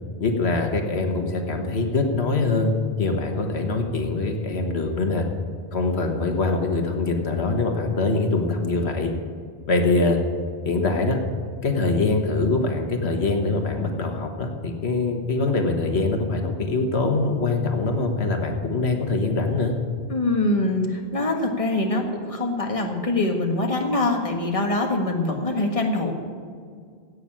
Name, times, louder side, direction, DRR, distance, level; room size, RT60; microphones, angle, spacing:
voice 1, 0.2-2.7 3.0-5.2 5.7-9.1 9.7-10.2 10.6-11.2 11.6-19.7, left 3 dB, 90° left, 4 dB, 1.7 m, -23 dB
voice 2, 20.1-26.1, left 2 dB, 30° left, 2 dB, 1.7 m, -24 dB
16.5 x 6.7 x 8.5 m, 2.1 s
omnidirectional pair, 1.1 m